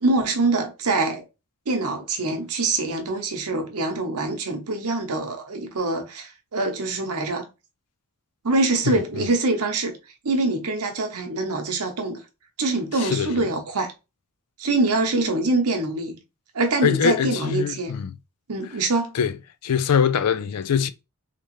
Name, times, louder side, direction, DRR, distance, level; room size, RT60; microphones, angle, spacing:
voice 1, 0.0-1.2 1.7-7.5 8.4-10.0 10.2-12.2 12.6-13.9 14.6-16.2 16.5-17.9 18.5-19.2, right 2 dB, 75° right, 0.8 m, -24 dB
voice 2, 8.9-9.3 13.0-13.5 16.8-18.1 19.1-19.3 19.6-20.9, left 7 dB, 90° left, 0.4 m, -23 dB
3.6 x 2.9 x 3.0 m
head